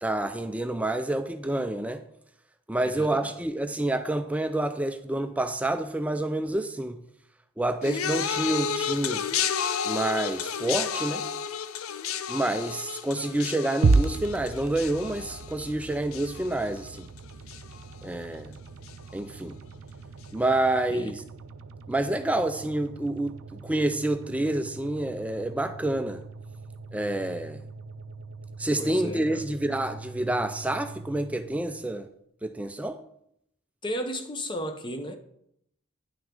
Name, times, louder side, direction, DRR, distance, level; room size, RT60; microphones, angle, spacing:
voice 1, 0.0-2.0 2.7-7.0 7.6-9.2 9.9-11.2 12.3-17.1 18.0-18.5 19.1-19.6 20.3-21.2 21.9-26.2 26.9-27.6 28.6-32.1 32.4-33.0, right 1 dB, 5° right, 0.3 m, -28 dB
voice 2, 2.8-3.3 20.9-21.1 28.8-29.4 33.8-35.2, equal, 20° left, 0.7 m, -34 dB
sound 1, 7.8-17.2 17.5-18.0 18.9-19.0, left 7 dB, 80° left, 0.5 m, -32 dB
sound 2, 13.8-32.1, right 3 dB, 70° right, 0.4 m, -34 dB
9.8 x 6.2 x 3.8 m
head